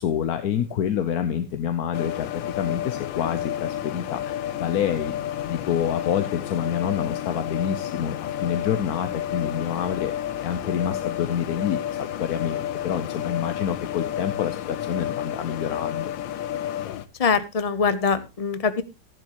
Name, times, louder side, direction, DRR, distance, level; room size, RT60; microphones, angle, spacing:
voice 1, 0.0-5.1 5.4-10.1 10.4-16.1, left 9 dB, 60° left, 9 dB, 1.2 m, -27 dB
sound 1, 1.9-17.1, left 11 dB, 85° left, 1.5 m, -31 dB
voice 2, 17.2-18.8, left 5 dB, 45° left, 13 dB, 0.4 m, -23 dB
14.0 x 11.0 x 3.0 m, 0.25 s
omnidirectional pair, 2.0 m